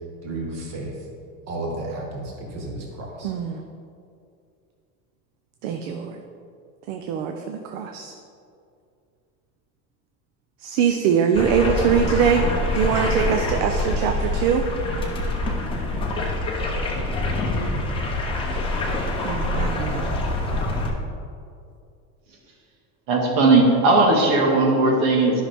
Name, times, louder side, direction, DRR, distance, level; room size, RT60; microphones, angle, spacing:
voice 1, 0.2-0.9 1.5-3.3, right 2 dB, 40° right, -1 dB, 1.5 m, -32 dB
voice 2, 3.2-3.6 5.6-6.2 6.9-8.1 10.6-12.4 12.7-14.6 19.2-20.1, right 7 dB, 70° right, 5 dB, 0.7 m, -22 dB
sound 1, 11.3-20.9, left 1 dB, 15° left, 0.6 m, -25 dB
voice 3, 23.1-25.4, right 2 dB, 85° right, 0 dB, 1.8 m, -17 dB
11.0 x 5.8 x 3.5 m, 2.4 s
cardioid pair, 165°, 42 cm